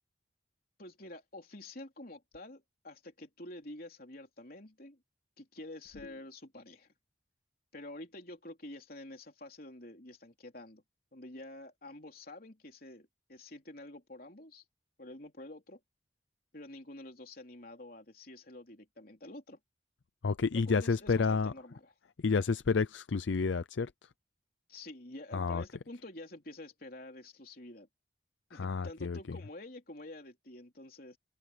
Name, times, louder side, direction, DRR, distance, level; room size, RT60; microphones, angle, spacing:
voice 1, 0.8-5.0 5.4-6.9 7.7-10.8 11.1-14.6 15.0-15.8 16.5-19.6 20.5-21.9 24.7-27.9 28.5-31.2, left 1 dB, 50° left, 3.7 m, -48 dB
voice 2, 20.2-21.5 22.2-23.9 25.3-25.6 28.5-29.4, left 4 dB, 75° left, 0.5 m, -30 dB
open air
head